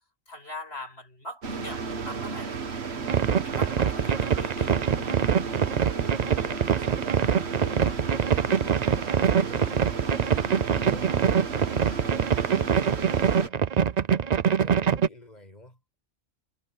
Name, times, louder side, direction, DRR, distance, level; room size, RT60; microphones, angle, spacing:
voice 1, 0.3-2.5 3.3-4.7, left 1 dB, 80° left, 7.2 m, -41 dB
sound 1, 1.4-13.5, right 5 dB, 90° right, 1.6 m, -33 dB
voice 2, 2.8-3.4 5.3-5.9 6.3-10.6 10.9-11.7 12.0-13.7 14.1-15.8, left 1 dB, 40° left, 7.0 m, -50 dB
sound 2, 3.1-15.1, right 7 dB, 45° right, 0.7 m, -24 dB
omnidirectional pair, 1.1 m